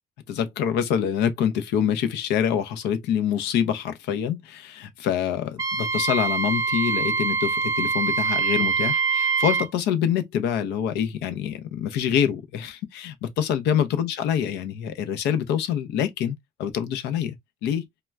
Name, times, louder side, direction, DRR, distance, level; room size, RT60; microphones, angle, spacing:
voice 1, 0.3-17.4 17.6-17.9, left 9 dB, 85° left, 0.6 m, -26 dB
Wind instrument woodwind instrument, 5.6-9.7, right 4 dB, 20° right, 0.4 m, -24 dB
3.2 x 2.2 x 2.3 m
cardioid pair, 110°, 17 cm